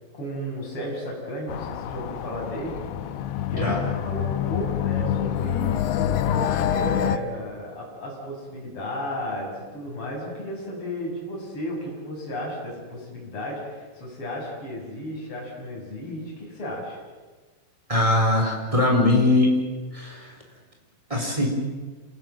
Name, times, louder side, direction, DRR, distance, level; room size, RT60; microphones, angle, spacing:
voice 1, 0.1-2.8 3.4-17.0, equal, 25° left, -3 dB, 8.0 m, -34 dB
sound 1, 1.5-7.2, left 10 dB, 80° left, 2.3 m, -26 dB
voice 2, 3.5-3.9 17.9-19.5 19.9-20.3 21.1-21.5, left 2 dB, 5° right, 1 dB, 3.5 m, -21 dB
28.0 x 19.0 x 7.7 m, 1.4 s
omnidirectional pair, 5.7 m